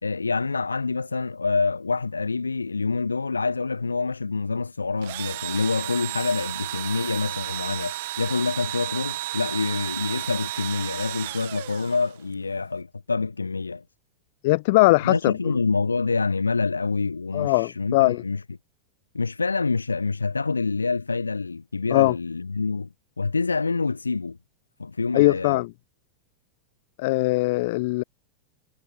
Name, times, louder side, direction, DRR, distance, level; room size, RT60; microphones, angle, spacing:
voice 1, 0.0-13.8 15.0-18.4 19.1-22.9 23.2-24.4 24.8-25.6, left 4 dB, 80° left, 3.2 m, -26 dB
Engine / Drill, 5.0-12.3, right 16 dB, 55° right, 5.1 m, -33 dB
voice 2, 14.4-15.3 17.3-18.2 21.9-22.1 25.1-25.7 27.0-28.0, left 22 dB, 50° left, 2.6 m, -20 dB
figure-of-eight pair, 90°, 0 cm